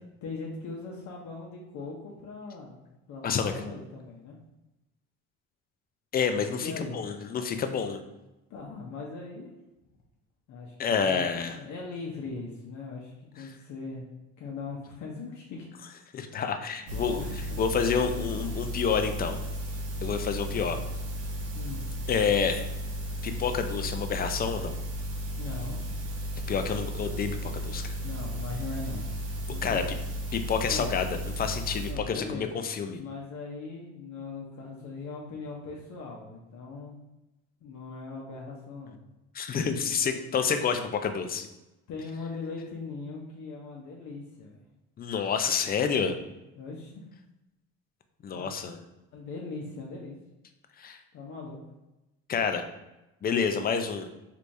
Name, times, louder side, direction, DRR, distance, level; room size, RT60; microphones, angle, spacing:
voice 1, 0.2-4.4 6.6-7.0 8.5-9.5 10.5-14.1 14.4-15.7 16.8-17.4 18.4-18.5 20.4-20.7 21.5-21.8 25.4-25.8 26.4-26.8 28.0-29.1 29.5-29.8 30.7-30.9 31.9-32.5 32.9-37.0 37.6-39.0 41.9-44.6 46.6-47.0 48.3-48.5 49.1-50.1 51.1-51.6, left 4 dB, 60° left, -2 dB, 0.8 m, -40 dB
voice 2, 6.1-8.0 10.8-11.6 16.1-17.2 17.6-19.4 20.0-20.8 22.1-22.6 23.2-24.8 26.5-27.9 29.6-29.8 30.3-33.0 39.3-41.5 45.0-46.1 48.2-48.8 50.8-51.0 52.3-52.6 53.2-54.1, left 6 dB, 30° left, 7 dB, 0.4 m, -28 dB
sound 1, 16.9-31.9, equal, 70° right, 1.1 m, -34 dB
3.3 x 3.1 x 2.6 m, 0.98 s
supercardioid pair, 85°, 32 cm